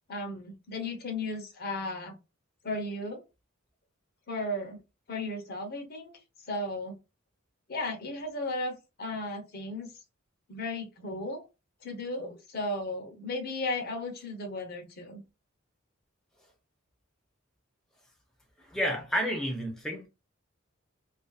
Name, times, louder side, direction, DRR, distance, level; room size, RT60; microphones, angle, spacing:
voice 1, 0.1-2.1 2.6-3.2 4.3-4.8 5.1-6.1 6.5-7.0 7.7-9.9 10.5-11.4 11.8-15.2, left 2 dB, 50° left, 0.8 m, -35 dB
voice 2, 18.6-20.1, equal, 5° left, 0.6 m, -30 dB
2.5 x 2.4 x 2.3 m
head